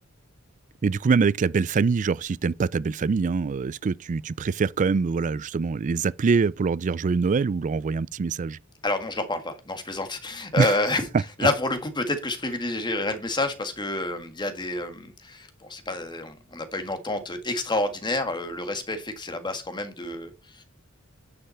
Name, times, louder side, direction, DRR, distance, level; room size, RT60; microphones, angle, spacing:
voice 1, 0.8-8.6 10.6-10.7, right 5 dB, 35° right, 0.3 m, -24 dB
voice 2, 8.8-11.0 11.4-20.6, left 2 dB, 20° left, 1.6 m, -29 dB
9.9 x 5.7 x 4.4 m
head